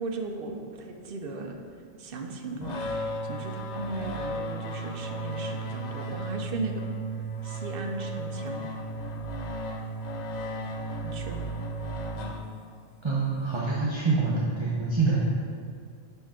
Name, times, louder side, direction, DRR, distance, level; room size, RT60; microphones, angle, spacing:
voice 1, 0.0-1.6 2.0-2.8 3.2-6.9 7.4-8.7 11.0-11.5, right 3 dB, 65° right, 4 dB, 0.8 m, -36 dB
sound 1, 2.6-12.9, right 1 dB, 55° left, 0.5 m, -34 dB
voice 2, 13.0-15.2, right 4 dB, 30° right, -6 dB, 0.7 m, -26 dB
5.6 x 5.6 x 3.6 m, 2.2 s
omnidirectional pair, 1.1 m